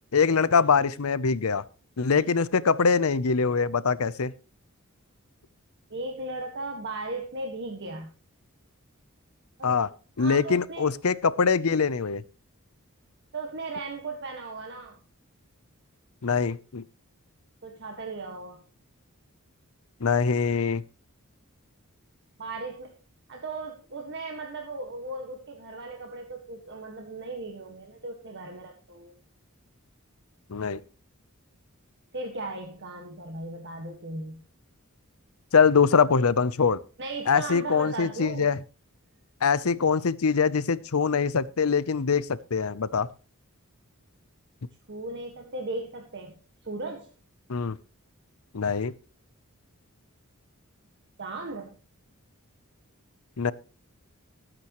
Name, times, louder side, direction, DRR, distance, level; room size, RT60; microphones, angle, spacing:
voice 1, 0.1-1.6 2.0-4.3 9.6-9.9 10.2-12.2 16.2-16.8 20.0-20.8 30.5-30.8 35.5-36.8 37.3-38.6 39.4-43.1 47.5-47.8 48.5-48.9 53.4-53.5, left 5 dB, 75° left, 18 dB, 0.7 m, -23 dB
voice 2, 5.9-8.1 9.6-9.8 10.2-10.9 13.3-15.0 17.6-18.6 22.4-22.9 23.3-29.1 32.1-34.4 37.0-38.5 44.9-47.1 51.2-51.8, right 2 dB, 55° right, 2 dB, 1.7 m, -37 dB
19.5 x 8.9 x 3.1 m, 0.34 s
head